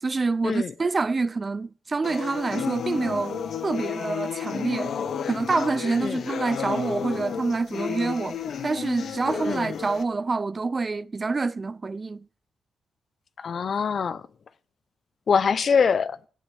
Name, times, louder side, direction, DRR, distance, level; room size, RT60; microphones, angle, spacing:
voice 1, 0.0-4.9 5.3-12.2, right 3 dB, 35° right, 0.5 m, -27 dB
sound 1, 2.0-10.0, left 7 dB, 70° left, 1.1 m, -32 dB
voice 2, 9.4-9.8 13.4-14.2 15.3-16.2, left 6 dB, 55° left, 0.7 m, -24 dB
16.5 x 10.0 x 3.4 m
cardioid pair, 85°, 0 cm